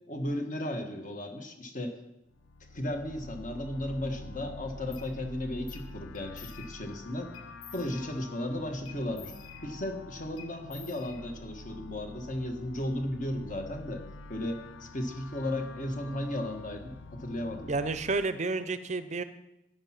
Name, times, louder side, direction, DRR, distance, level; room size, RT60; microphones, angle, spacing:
voice 1, 0.1-2.0 2.7-7.3 7.7-9.3 9.6-14.0 14.3-17.7, left 1 dB, 40° left, 5 dB, 1.5 m, -35 dB
sound 1, 2.3-18.2, left 3 dB, 75° left, 0.5 m, -47 dB
sound 2, 4.9-5.1 5.7-5.9 6.1-7.0 7.3-8.3 8.8-10.0 10.4-11.6, left 8 dB, 90° left, 1.5 m, -51 dB
voice 2, 17.7-19.2, right 3 dB, 35° right, 12 dB, 0.5 m, -30 dB
10.5 x 9.8 x 5.9 m, 0.92 s
head